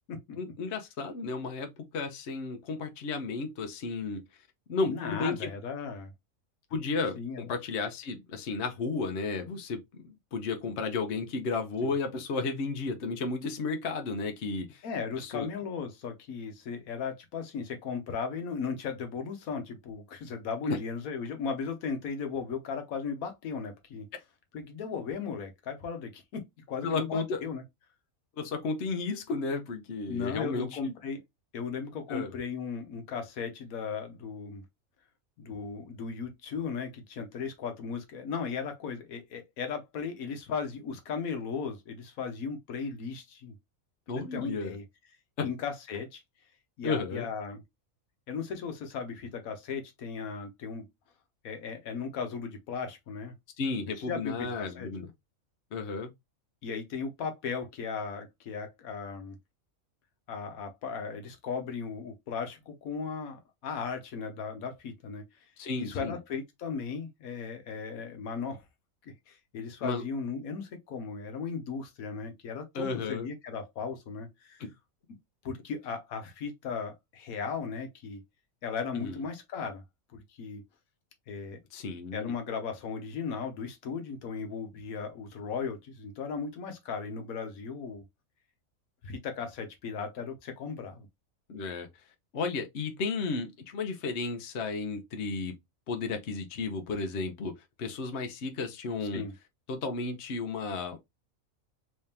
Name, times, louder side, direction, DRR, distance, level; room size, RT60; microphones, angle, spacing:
voice 1, 0.4-4.2 4.7-5.5 6.7-14.8 15.2-15.5 20.7-20.8 26.8-27.4 28.4-30.9 32.1-32.3 44.1-44.8 45.4-45.5 46.8-47.3 53.6-55.1 55.7-56.1 65.6-66.2 69.8-70.0 72.7-73.3 78.9-79.2 81.7-82.3 91.5-91.9 92.3-95.5 95.9-97.5 97.8-99.2 99.7-101.0, left 4 dB, 55° left, 1.0 m, -33 dB
voice 2, 4.9-6.1 7.1-7.5 11.8-11.9 14.8-24.1 24.5-26.4 26.7-27.6 30.1-31.2 31.5-34.6 35.4-43.5 44.3-44.8 45.4-46.2 46.8-47.6 48.3-50.8 51.4-53.3 54.0-54.9 56.6-59.4 60.3-65.5 65.8-68.6 69.0-74.6 75.4-78.2 78.6-79.8 80.1-80.6 81.3-81.6 82.1-88.0 89.0-91.1 99.1-99.3, left 5 dB, 85° left, 1.3 m, -36 dB
3.5 x 3.3 x 2.8 m
omnidirectional pair, 1.4 m